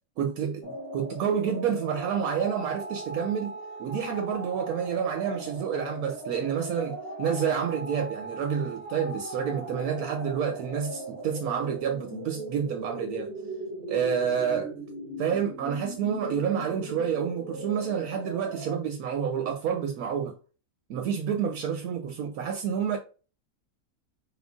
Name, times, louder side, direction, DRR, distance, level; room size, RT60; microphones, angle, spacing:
voice 1, 0.2-13.3 13.9-14.7 15.2-20.4 20.9-23.0, right 7 dB, 75° right, 1.0 m, -29 dB
sound 1, 0.6-18.8, right 2 dB, 75° left, 1.8 m, -38 dB
5.0 x 2.4 x 3.6 m
omnidirectional pair, 1.6 m